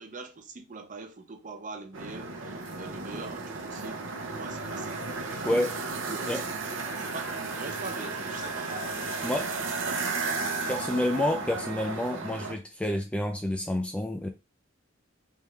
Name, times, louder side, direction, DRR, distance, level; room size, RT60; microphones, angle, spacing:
voice 1, 0.0-4.0 4.3-5.7 6.1-6.4 7.0-8.7 9.3-9.6 9.8-10.2 10.5-11.3, right 3 dB, 40° right, 0.6 m, -43 dB
sound 1, 1.9-12.5, right 3 dB, 70° right, 0.8 m, -34 dB
voice 2, 5.4-5.8 6.3-6.4 9.2-9.5 10.7-14.3, left 1 dB, 5° left, 0.4 m, -29 dB
3.6 x 3.2 x 3.1 m
head